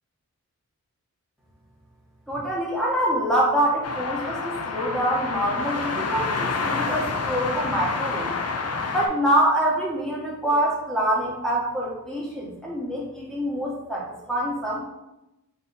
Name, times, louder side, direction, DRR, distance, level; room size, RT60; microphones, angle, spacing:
voice 1, 2.3-8.3 8.9-14.8, right 1 dB, ahead, -5 dB, 1.3 m, -25 dB
sound 1, 3.8-9.1, left 4 dB, 50° left, 0.5 m, -28 dB
4.0 x 2.8 x 4.0 m, 0.96 s
wide cardioid pair, 85°, 32 cm